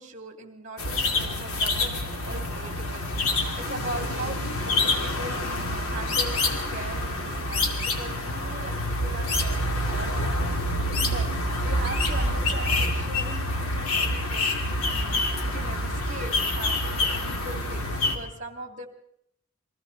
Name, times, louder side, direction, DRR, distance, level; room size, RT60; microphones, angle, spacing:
voice 1, 0.0-4.4 5.0-10.7 11.0-11.3 11.6-18.9, right 2 dB, 35° right, 6 dB, 2.5 m, -40 dB
sound 1, 0.8-18.2, left 1 dB, 80° left, 2.4 m, -27 dB
29.0 x 22.5 x 4.0 m, 0.75 s
head